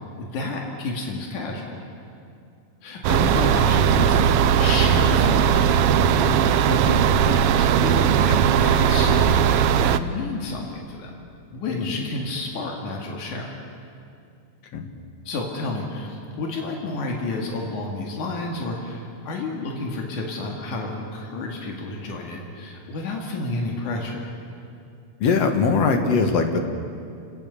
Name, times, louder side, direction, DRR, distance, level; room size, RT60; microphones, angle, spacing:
voice 1, 0.2-1.8 2.8-11.1 11.5-13.6 15.3-24.3, left 2 dB, 90° left, 0 dB, 3.6 m, -30 dB
sound 1, 3.0-10.0, right 8 dB, 90° right, 1.3 m, -18 dB
voice 2, 11.7-12.0 14.7-14.9 25.2-26.6, left 4 dB, 60° left, 5 dB, 2.6 m, -21 dB
29.0 x 18.0 x 7.0 m, 2.4 s
omnidirectional pair, 3.4 m